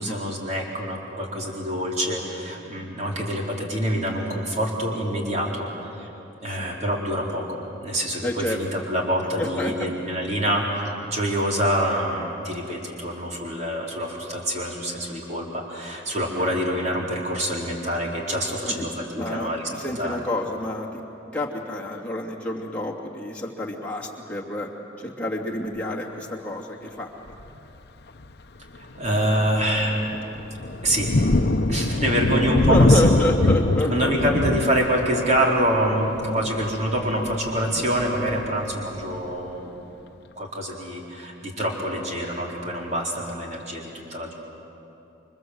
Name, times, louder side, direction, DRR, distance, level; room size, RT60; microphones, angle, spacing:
voice 1, 0.0-6.1 6.4-19.7 20.0-20.2 28.8-30.0 30.8-31.1 31.7-33.0 33.9-39.7 40.4-44.3, equal, 35° right, -2 dB, 4.3 m, -26 dB
voice 2, 8.2-8.6 9.4-9.9 16.3-16.5 18.7-18.9 19.2-21.1 21.3-24.7 25.0-27.3 32.3-34.3, left 1 dB, 5° left, -3 dB, 2.7 m, -29 dB
Thunder, 27.3-27.6 28.2-28.3 28.8-39.3, left 2 dB, 55° left, 0.8 m, -24 dB
28.5 x 24.5 x 8.0 m, 2.9 s
head